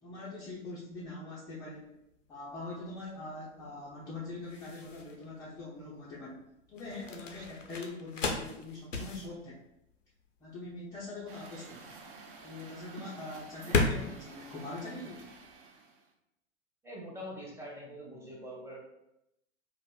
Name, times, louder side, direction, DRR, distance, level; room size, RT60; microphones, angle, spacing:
voice 1, 0.0-1.9 2.3-6.4 6.7-9.6 10.4-11.9 12.4-15.2, left 2 dB, 10° left, -7 dB, 0.4 m, -43 dB
sound 1, 1.7-15.6, left 3 dB, 85° left, 0.5 m, -37 dB
Truck, 11.3-16.1, right 4 dB, 45° right, 0.6 m, -50 dB
voice 2, 16.8-18.8, equal, 5° right, -3 dB, 0.7 m, -44 dB
3.9 x 2.5 x 2.2 m, 0.85 s
figure-of-eight pair, 90°, 37 cm